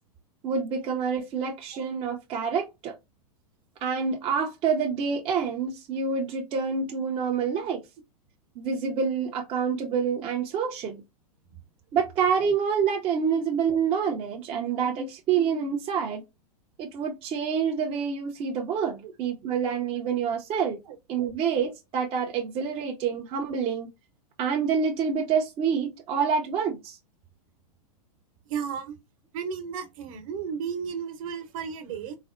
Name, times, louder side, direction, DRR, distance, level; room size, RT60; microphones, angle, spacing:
voice 1, 0.4-3.0 3.8-7.8 8.6-11.0 11.9-16.2 16.8-20.8 21.1-23.9 24.4-27.0, right 6 dB, 30° right, 0.5 m, -27 dB
voice 2, 28.5-29.0 29.3-32.2, right 7 dB, 55° right, 0.9 m, -33 dB
4.0 x 2.0 x 2.4 m
hypercardioid pair, 110°, 20 cm